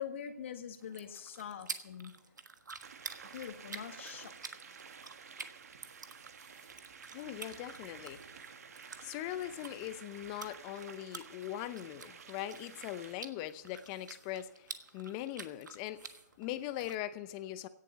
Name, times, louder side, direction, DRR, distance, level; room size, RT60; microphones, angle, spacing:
voice 1, 0.0-2.2 3.3-4.4, left 8 dB, 45° left, 1.6 m, -43 dB
sound 1, 0.8-17.0, right 4 dB, 85° right, 1.3 m, -50 dB
sound 2, 2.8-13.1, right 6 dB, 60° right, 1.5 m, -52 dB
voice 2, 7.1-8.2 9.0-17.7, left 13 dB, 20° left, 0.7 m, -41 dB
17.0 x 7.5 x 6.9 m
hypercardioid pair, 155°, 10 cm